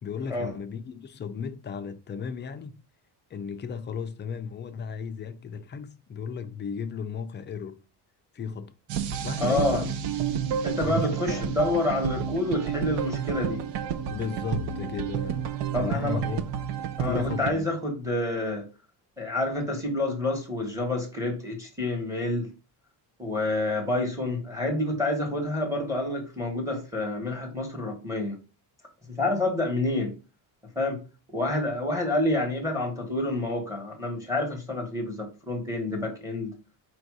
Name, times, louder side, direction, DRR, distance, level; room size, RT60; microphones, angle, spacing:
voice 1, 0.0-2.8 3.3-7.8 8.3-8.7 9.2-9.9 10.6-11.5 14.1-16.4 17.0-17.7, left 6 dB, 30° left, 0.3 m, -35 dB
sound 1, 8.9-17.5, right 8 dB, 80° right, 0.7 m, -30 dB
voice 2, 9.4-9.9 10.6-13.6 15.7-16.2 17.0-18.7 19.2-22.5 23.2-28.4 29.1-30.1 30.7-31.0 31.3-36.5, left 2 dB, 5° right, 1.1 m, -28 dB
4.5 x 2.6 x 4.6 m
cardioid pair, 160°, 41 cm